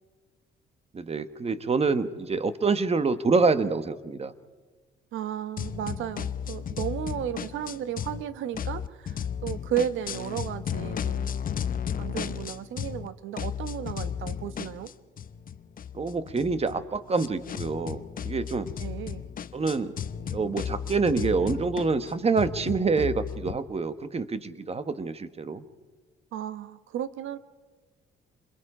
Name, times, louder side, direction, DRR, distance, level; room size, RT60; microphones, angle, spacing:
voice 1, 0.9-4.3 15.9-18.7 19.5-19.9 20.2-25.6, right 4 dB, 30° right, 12 dB, 1.3 m, -26 dB
voice 2, 5.1-11.3 12.0-14.9 18.8-19.2 26.3-27.4, right 10 dB, 80° right, 13 dB, 1.0 m, -34 dB
sound 1, 5.6-8.2 8.5-13.1 13.4-23.6, left 8 dB, 45° left, 0.7 m, -34 dB
27.0 x 21.5 x 5.0 m, 1.4 s
cardioid pair, 90°, 20 cm